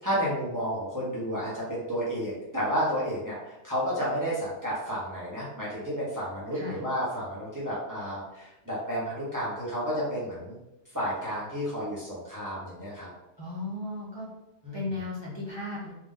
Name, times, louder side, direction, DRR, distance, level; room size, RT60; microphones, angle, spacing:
voice 1, 0.0-3.4 3.6-10.5 10.9-13.1 14.6-14.8, equal, 20° right, -7 dB, 1.0 m, -31 dB
voice 2, 13.4-14.3 14.7-15.9, left 2 dB, 25° left, -9 dB, 1.1 m, -35 dB
3.5 x 2.9 x 3.6 m, 0.92 s
omnidirectional pair, 1.2 m